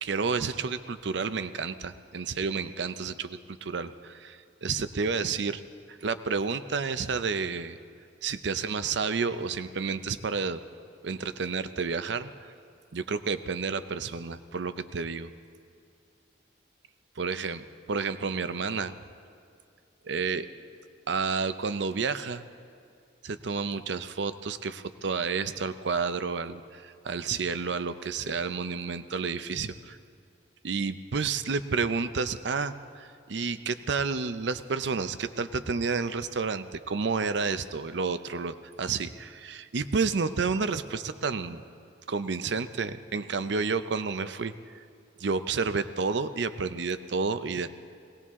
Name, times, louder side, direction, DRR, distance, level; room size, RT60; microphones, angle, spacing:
voice 1, 0.0-5.6 5.9-7.8 8.2-10.6 11.0-12.5 12.9-15.3 17.2-17.6 17.9-19.0 20.1-20.5 21.1-22.4 23.2-30.0 30.6-41.6 42.1-44.5 45.2-47.7, right 4 dB, 70° right, 12 dB, 0.6 m, -30 dB
20.5 x 18.5 x 3.7 m, 2.4 s
head